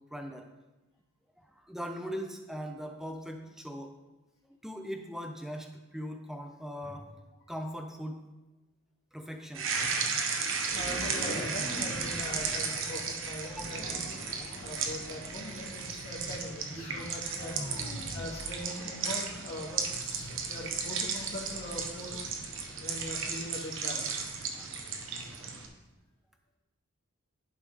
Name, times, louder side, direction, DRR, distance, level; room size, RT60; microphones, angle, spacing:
voice 1, 0.1-0.5 1.4-3.9 4.6-7.2 7.5-8.2 9.1-9.8 13.4-13.7 24.5-24.7, equal, ahead, 4 dB, 0.6 m, -40 dB
sound 1, 9.5-25.7, right 5 dB, 60° right, 0.8 m, -35 dB
sound 2, 10.6-24.8 25.4-25.5, equal, 80° left, 2.4 m, -45 dB
voice 2, 10.7-14.0 14.6-17.6 18.1-22.2 22.8-24.1, left 1 dB, 50° left, -9 dB, 1.8 m, -41 dB
11.0 x 3.7 x 4.8 m, 1.1 s
head